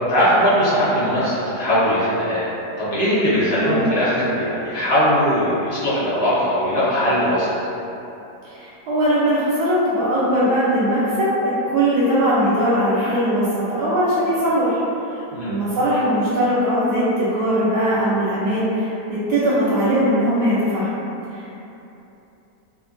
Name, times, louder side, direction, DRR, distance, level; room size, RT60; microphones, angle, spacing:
voice 1, 0.1-2.5 2.8-7.5 15.3-15.6, equal, 60° left, -11 dB, 1.2 m, -20 dB
voice 2, 8.4-14.8 15.1-20.9 21.3-21.5, equal, 80° right, -9 dB, 1.2 m, -20 dB
3.0 x 2.1 x 2.4 m, 2.9 s
omnidirectional pair, 1.8 m